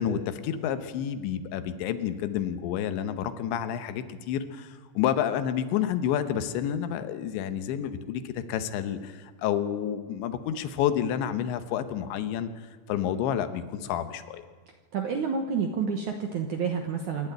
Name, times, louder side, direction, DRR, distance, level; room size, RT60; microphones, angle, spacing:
voice 1, 0.0-14.4, left 9 dB, 85° left, 10 dB, 3.4 m, -29 dB
voice 2, 14.9-17.3, right 5 dB, 70° right, 4 dB, 1.9 m, -29 dB
27.0 x 11.0 x 9.0 m, 1.6 s
omnidirectional pair, 5.1 m